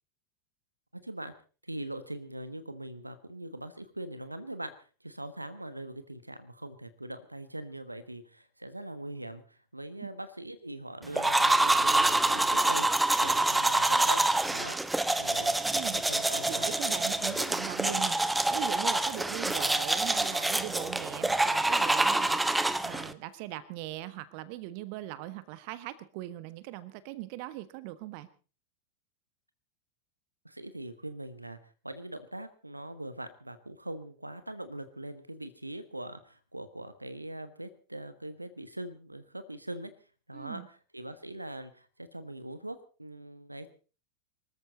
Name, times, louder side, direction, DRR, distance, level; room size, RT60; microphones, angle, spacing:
voice 1, 0.9-1.3 1.6-4.7 5.0-14.8 15.2-15.6 15.9-17.4 17.8-18.1 30.4-39.9 40.3-43.7, right 1 dB, 85° right, 12 dB, 1.3 m, -42 dB
sound 1, 11.1-23.1, right 2 dB, 5° right, 1.0 m, -26 dB
voice 2, 15.7-16.0 16.5-18.2 18.5-28.3 40.3-40.7, right 16 dB, 45° right, 15 dB, 1.3 m, -40 dB
24.0 x 14.0 x 4.0 m, 0.36 s
figure-of-eight pair, 90°, 0 cm